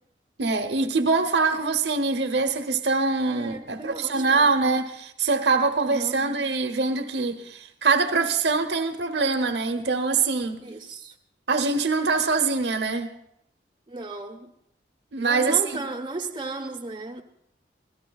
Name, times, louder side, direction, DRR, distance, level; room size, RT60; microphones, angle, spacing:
voice 1, 0.4-10.6 11.5-13.1 15.1-15.8, right 4 dB, 75° right, 0.9 m, -24 dB
voice 2, 3.3-4.5 5.9-6.2 10.6-11.1 13.9-14.5 15.2-17.2, right 2 dB, 25° right, 1.0 m, -35 dB
25.0 x 16.5 x 2.4 m
head